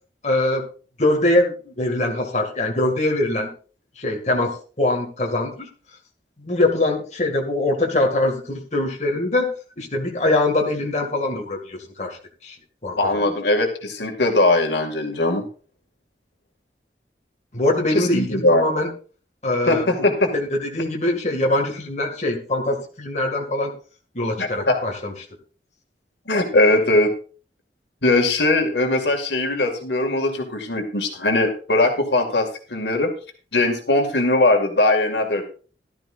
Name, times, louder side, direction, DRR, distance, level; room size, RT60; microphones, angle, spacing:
voice 1, 0.2-0.7 1.0-3.5 4.0-5.7 6.4-12.2 12.4-12.6 12.8-13.2 17.5-18.9 19.4-23.7 24.1-25.1, left 2 dB, 40° left, 0 dB, 2.1 m, -23 dB
voice 2, 13.0-15.5 17.9-18.6 19.7-20.3 24.4-24.8 26.3-27.1 28.0-33.1 33.5-35.4, left 2 dB, 80° left, 3 dB, 2.2 m, -20 dB
15.5 x 12.5 x 2.5 m, 0.38 s
head